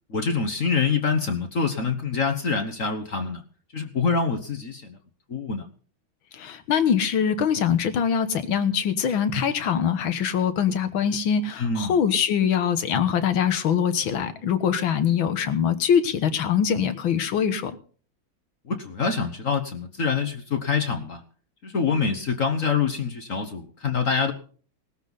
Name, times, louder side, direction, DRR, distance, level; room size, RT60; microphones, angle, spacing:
voice 1, 0.1-3.4 3.7-5.0 5.3-5.7 11.6-11.9 18.6-21.2 21.6-24.3, left 5 dB, 45° left, 6 dB, 1.4 m, -25 dB
voice 2, 6.3-17.8, left 8 dB, 75° left, 10 dB, 2.0 m, -23 dB
19.0 x 13.0 x 4.0 m, 0.44 s
omnidirectional pair, 2.2 m